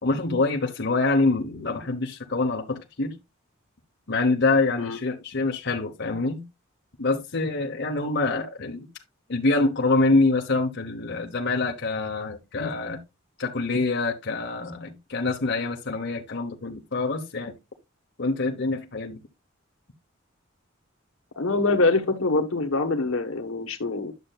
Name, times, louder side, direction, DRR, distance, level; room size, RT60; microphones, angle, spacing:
voice 1, 0.0-3.2 4.1-6.4 7.0-8.9 9.3-13.0 13.4-17.5 18.2-19.2, left 3 dB, 55° left, 1.1 m, -25 dB
voice 2, 21.4-24.1, left 3 dB, 75° left, 1.2 m, -24 dB
11.0 x 6.7 x 2.3 m
head